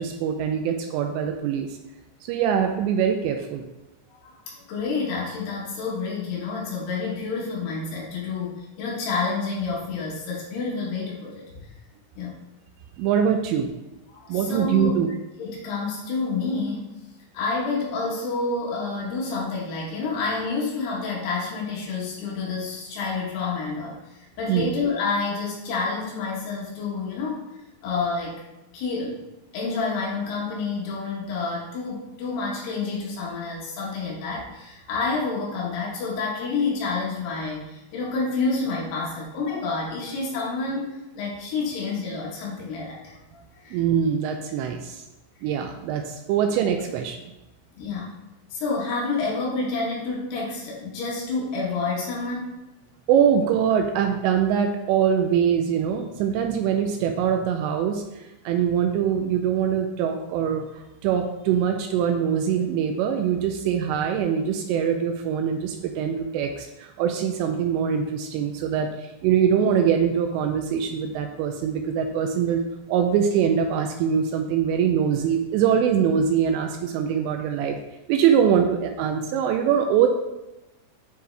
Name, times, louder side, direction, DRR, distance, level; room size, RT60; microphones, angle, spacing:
voice 1, 0.0-1.8 2.2-3.7 13.0-13.7 14.3-15.1 24.5-24.7 43.7-45.0 45.4-47.3 53.1-60.7 61.0-77.8 78.1-80.1, right 8 dB, 85° right, 5 dB, 2.6 m, -23 dB
voice 2, 4.1-11.7 12.2-12.4 14.1-14.9 15.4-16.9 17.3-27.4 27.8-28.4 28.7-29.2 29.5-43.1 43.5-43.8 47.8-48.1 48.5-52.6, left 4 dB, 70° left, -4 dB, 3.1 m, -29 dB
9.3 x 3.4 x 3.3 m, 0.99 s
omnidirectional pair, 5.3 m